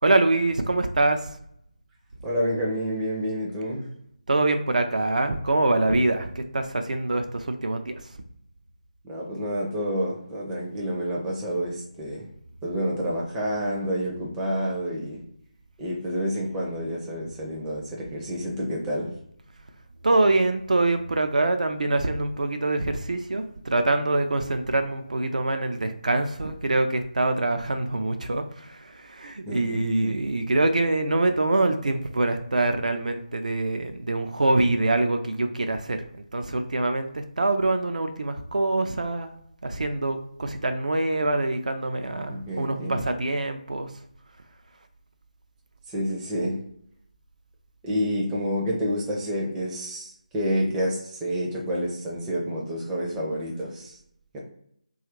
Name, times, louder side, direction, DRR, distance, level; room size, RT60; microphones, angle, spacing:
voice 1, 0.0-1.3 4.3-7.9 20.0-36.0 36.3-39.3 39.6-43.9, right 2 dB, 70° right, 7 dB, 0.4 m, -24 dB
voice 2, 2.2-3.9 9.0-12.3 12.6-15.2 15.8-19.1 29.4-30.2 42.3-43.0 45.9-46.6 47.8-54.0 54.3-54.4, equal, 10° right, -4 dB, 0.4 m, -29 dB
2.9 x 2.4 x 2.9 m, 0.69 s
figure-of-eight pair, 160°, 4 cm